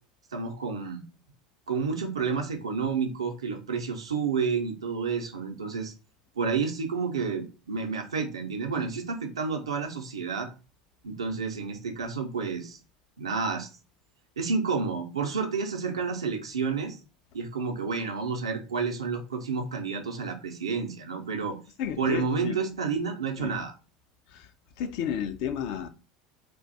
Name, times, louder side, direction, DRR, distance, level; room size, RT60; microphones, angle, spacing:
voice 1, 0.3-1.0 1.7-5.9 6.4-10.5 11.0-12.8 13.2-13.7 14.4-17.0 17.3-21.6 22.0-23.7, right 5 dB, 80° right, 0.5 m, -30 dB
voice 2, 21.8-22.6 23.4-23.5 24.3-24.5 24.8-25.9, left 8 dB, 60° left, 0.4 m, -32 dB
2.5 x 2.2 x 3.8 m
figure-of-eight pair, 75°, 3 cm